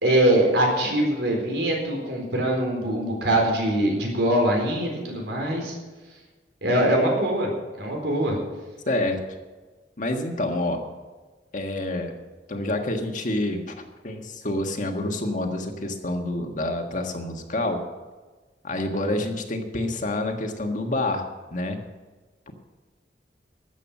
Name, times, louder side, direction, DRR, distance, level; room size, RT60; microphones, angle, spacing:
voice 1, 0.0-5.7 6.6-7.5 7.8-8.4, right 1 dB, 90° right, 0 dB, 4.1 m, -22 dB
voice 2, 8.9-9.2 10.0-10.8 11.5-12.1 12.5-13.8 14.0-17.8 18.6-21.2 21.5-21.8 22.5-22.6, left 1 dB, 45° left, 4 dB, 1.6 m, -27 dB
13.0 x 8.2 x 7.2 m, 1.3 s
head